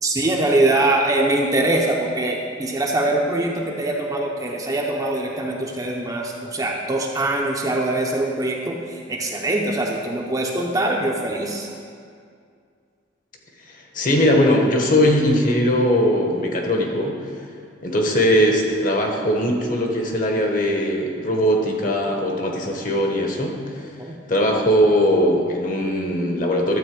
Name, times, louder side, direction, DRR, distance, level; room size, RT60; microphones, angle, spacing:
voice 1, 0.0-11.7 24.0-24.2, right 2 dB, 20° right, -1 dB, 0.8 m, -23 dB
voice 2, 13.7-17.2 17.8-23.9 24.3-26.8, equal, 40° left, 1 dB, 1.2 m, -20 dB
12.0 x 4.3 x 7.7 m, 2.2 s
head